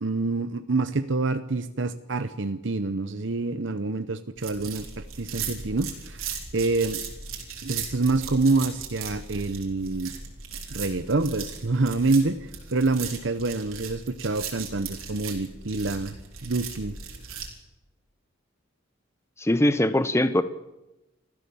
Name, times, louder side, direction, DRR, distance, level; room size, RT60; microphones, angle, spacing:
voice 1, 0.0-7.0 7.6-10.1 10.7-16.2 16.4-17.0, right 3 dB, 60° right, 10 dB, 0.8 m, -27 dB
sound 1, 4.4-17.5, right 6 dB, 85° right, 4.1 m, -38 dB
voice 2, 19.4-20.4, left 1 dB, 15° left, 12 dB, 0.8 m, -21 dB
25.5 x 14.5 x 7.0 m, 0.98 s
head